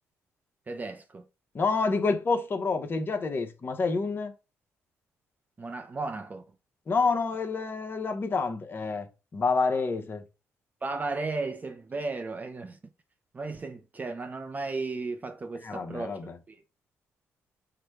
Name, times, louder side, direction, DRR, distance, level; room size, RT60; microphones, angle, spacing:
voice 1, 0.7-1.3 5.6-6.4 10.8-12.8 13.3-16.2 16.5-16.6, right 3 dB, 30° right, 0.5 m, -35 dB
voice 2, 1.5-4.3 6.9-9.1 9.3-10.2 15.6-16.3, left 4 dB, 40° left, 0.9 m, -28 dB
4.9 x 2.2 x 4.5 m
cardioid pair, 80°, 6 cm